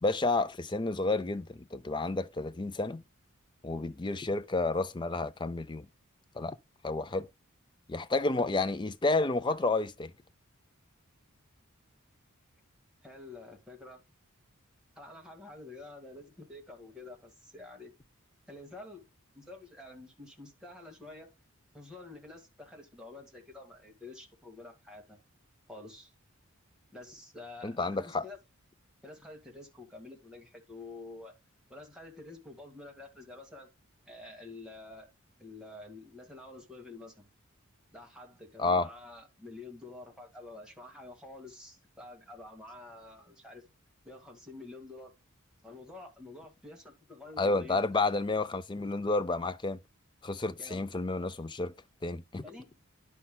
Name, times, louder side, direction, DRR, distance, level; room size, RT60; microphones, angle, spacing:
voice 1, 0.0-3.0 3.6-5.9 6.4-6.5 6.8-7.3 7.9-10.1 27.6-28.2 38.6-38.9 47.4-49.8 50.2-51.7 52.0-52.4, left 3 dB, 20° left, 0.5 m, -30 dB
voice 2, 13.0-14.0 15.0-17.9 18.5-19.1 19.3-21.3 21.7-25.2 25.7-26.1 26.9-28.4 29.0-31.3 31.7-33.7 34.1-35.1 35.4-37.3 37.9-43.6 44.0-45.1 45.6-48.0 50.6-50.8 52.4-52.8, left 2 dB, 5° right, 2.0 m, -48 dB
11.0 x 5.7 x 2.3 m
head